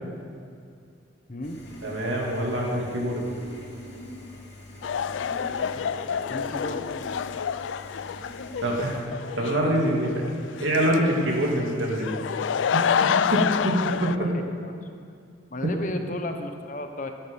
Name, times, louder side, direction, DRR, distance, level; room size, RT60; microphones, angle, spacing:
sound 1, 1.4-9.0, left 1 dB, 65° left, 2.3 m, -43 dB
voice 1, 1.8-3.2 5.8-5.9 8.6-9.1 9.4-10.2 10.6-12.1 12.7-14.3, right 1 dB, 80° right, -2 dB, 2.6 m, -25 dB
sound 2, 4.8-14.2, left 7 dB, 80° left, 0.4 m, -28 dB
voice 2, 6.3-6.8 14.2-14.7 15.5-17.1, left 1 dB, 45° left, 6 dB, 0.9 m, -34 dB
13.0 x 10.5 x 5.5 m, 2.4 s
head